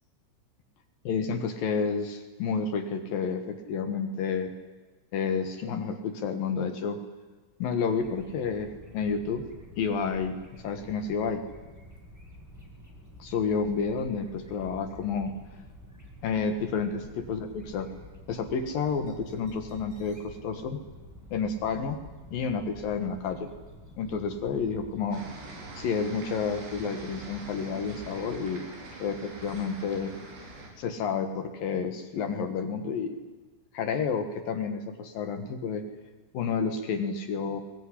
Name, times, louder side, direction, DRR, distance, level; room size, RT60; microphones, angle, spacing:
voice 1, 1.0-4.5 5.1-7.0 7.6-9.4 9.7-11.5 13.2-15.4 16.2-17.9 18.3-20.8 21.3-22.0 22.3-23.5 24.0-25.3 25.7-28.6 29.0-30.1 30.8-33.2 33.7-35.8 36.3-37.6, left 5 dB, 60° left, 8 dB, 2.6 m, -30 dB
sound 1, 8.0-25.2, equal, 5° right, 5.9 m, -49 dB
sound 2, 25.1-30.7, right 2 dB, 65° right, 6.8 m, -43 dB
22.5 x 20.5 x 9.9 m, 1.3 s
omnidirectional pair, 5.5 m